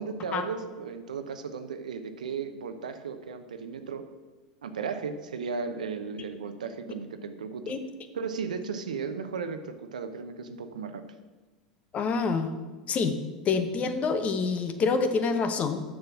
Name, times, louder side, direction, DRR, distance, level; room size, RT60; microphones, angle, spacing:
voice 1, 0.0-4.0 4.6-7.6 8.1-11.0, right 5 dB, 80° right, 8 dB, 0.8 m, -35 dB
voice 2, 11.9-12.5 12.9-13.2 13.4-15.8, left 4 dB, 35° left, 8 dB, 1.1 m, -26 dB
7.0 x 6.7 x 7.4 m, 1.3 s
hypercardioid pair, 90°, 4 cm